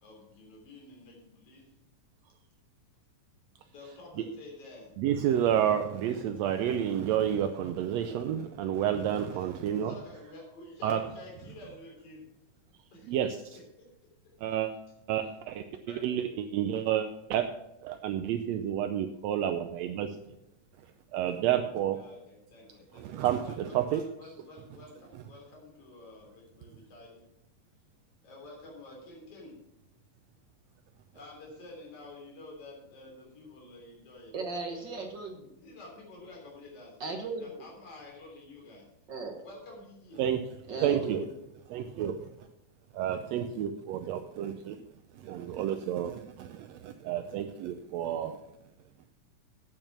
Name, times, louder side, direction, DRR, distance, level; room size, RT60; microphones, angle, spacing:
voice 1, 0.0-1.7 3.7-4.9 9.3-9.5 9.7-12.2 12.9-13.2 13.8-13.9 14.5-14.6 15.9-16.2 21.9-27.2 28.2-29.6 31.1-34.3 34.7-34.8 35.6-37.0 37.4-38.9 39.4-40.2 40.9-41.1, left 2 dB, 45° left, -2 dB, 4.3 m, -50 dB
voice 2, 5.0-9.9 10.8-11.0 13.0-13.6 14.4-14.7 15.1-17.5 17.8-20.2 21.1-22.0 22.9-24.0 40.2-40.4 40.8-41.2 41.7-42.2 42.9-44.8 45.1-48.4, right 10 dB, 80° right, 7 dB, 1.5 m, -30 dB
voice 3, 34.3-35.5 37.0-37.7 39.1-39.4 40.7-41.2 41.8-42.2, right 3 dB, 60° right, 3 dB, 1.2 m, -37 dB
8.9 x 8.8 x 6.1 m, 0.85 s
omnidirectional pair, 3.7 m